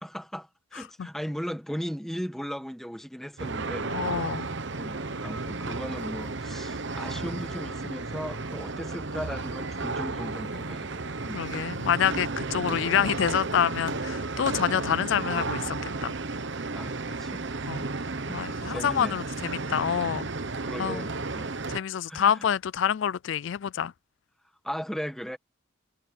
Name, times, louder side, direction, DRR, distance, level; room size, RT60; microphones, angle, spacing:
voice 1, 0.0-3.9 4.8-11.5 16.7-18.4 18.7-19.2 20.6-21.5 22.1-22.5 24.6-25.4, equal, ahead, 1.1 m, -37 dB
sound 1, 3.4-21.8, right 3 dB, 60° right, 1.0 m, -33 dB
voice 2, 3.9-4.5 11.4-15.8 16.0-16.1 17.7-17.9 18.3-20.3 20.8-21.1 21.7-23.9, left 8 dB, 60° left, 0.3 m, -27 dB
head